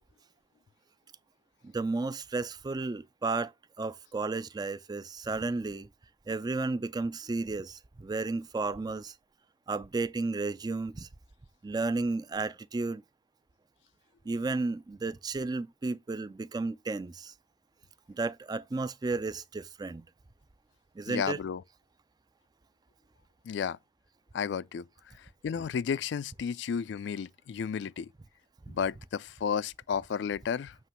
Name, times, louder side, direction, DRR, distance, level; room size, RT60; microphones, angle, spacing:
voice 1, 1.6-3.5 3.8-5.9 6.3-9.1 9.7-11.1 11.6-13.0 14.3-17.3 18.1-20.0 21.0-21.4 28.7-28.8, right 3 dB, 20° right, 0.4 m, -33 dB
voice 2, 21.1-21.6 23.5-23.8 24.3-24.8 25.4-28.1 28.7-30.7, left 7 dB, 70° left, 0.3 m, -32 dB
7.5 x 3.0 x 5.6 m
head